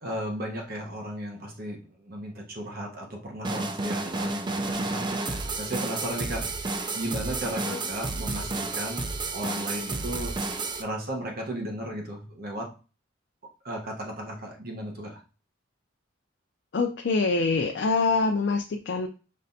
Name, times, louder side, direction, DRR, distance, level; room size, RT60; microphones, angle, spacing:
voice 1, 0.0-6.5 6.9-9.0 9.3-10.4 10.8-12.7 13.6-15.2, right 1 dB, 50° right, 0 dB, 1.1 m, -35 dB
sound 1, 3.4-10.8, right 3 dB, 25° right, 0.4 m, -31 dB
voice 2, 16.7-19.1, left 3 dB, 60° left, 3 dB, 0.5 m, -25 dB
5.4 x 3.3 x 2.7 m, 0.34 s
head